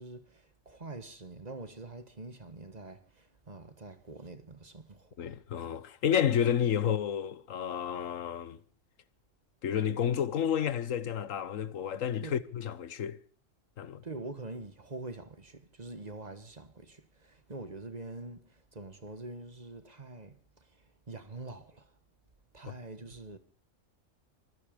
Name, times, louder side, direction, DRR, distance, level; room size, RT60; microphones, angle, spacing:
voice 1, 0.0-5.2 12.2-12.4 14.0-21.9 22.5-23.4, right 3 dB, 35° right, 1.4 m, -45 dB
voice 2, 5.2-8.6 9.6-13.2 13.8-14.0, left 9 dB, 90° left, 1.4 m, -30 dB
25.0 x 9.7 x 5.1 m
omnidirectional pair, 1.3 m